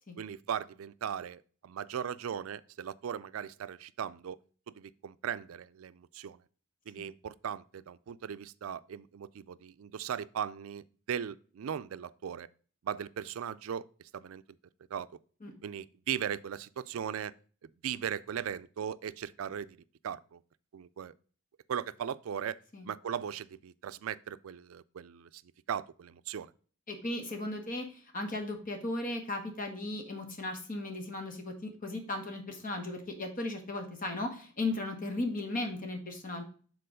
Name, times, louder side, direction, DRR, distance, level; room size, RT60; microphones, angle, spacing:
voice 1, 0.2-4.4 4.8-6.4 6.9-12.5 12.8-13.8 14.1-14.4 14.9-15.1 15.6-17.3 17.8-19.8 20.0-20.4 20.7-21.1 21.7-22.6 22.8-25.3 25.7-26.5, right 8 dB, 90° right, 0.4 m, -38 dB
voice 2, 26.9-36.4, left 2 dB, 40° left, 1.5 m, -36 dB
6.8 x 4.0 x 5.0 m
head